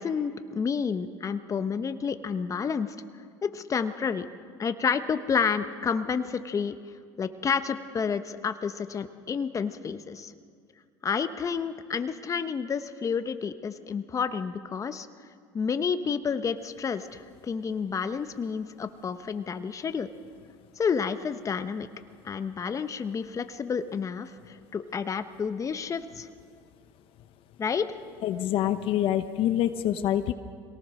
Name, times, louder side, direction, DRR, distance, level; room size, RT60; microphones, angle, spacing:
voice 1, 0.0-2.9 3.4-4.3 4.6-6.8 7.2-10.3 11.0-15.1 15.5-20.1 20.8-21.9 22.2-26.3 27.6-28.0, left 6 dB, 30° left, 10 dB, 1.1 m, -30 dB
voice 2, 28.2-30.3, left 11 dB, 60° left, 10 dB, 0.9 m, -26 dB
23.0 x 18.0 x 6.5 m, 2.1 s
supercardioid pair, 90°, 10 cm